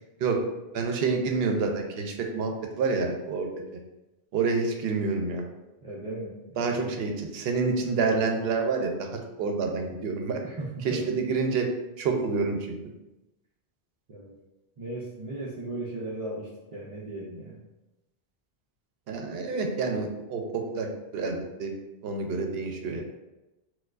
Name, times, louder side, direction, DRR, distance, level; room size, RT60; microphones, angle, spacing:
voice 1, 0.7-3.5 4.3-5.4 6.6-9.1 9.4-10.4 10.8-11.7 12.0-12.8 19.1-20.9 21.1-21.7 22.0-23.0, right 4 dB, 75° right, 3 dB, 0.8 m, -28 dB
voice 2, 5.8-6.9 10.4-11.0 14.1-14.3 14.8-17.6, right 2 dB, 45° right, -5 dB, 0.5 m, -37 dB
4.4 x 2.2 x 2.4 m, 1.0 s
omnidirectional pair, 1.0 m